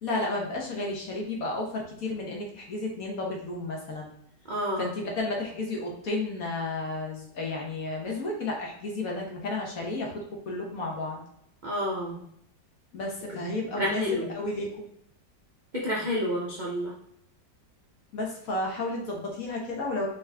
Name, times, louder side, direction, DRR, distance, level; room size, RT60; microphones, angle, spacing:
voice 1, 0.0-4.1 4.8-11.2 12.9-14.8 18.1-20.1, left 2 dB, 55° left, -1 dB, 1.4 m, -32 dB
voice 2, 4.5-4.9 11.6-12.2 13.7-14.3 15.7-16.9, equal, 65° right, -3 dB, 0.4 m, -29 dB
4.1 x 3.5 x 3.3 m, 0.70 s
omnidirectional pair, 2.0 m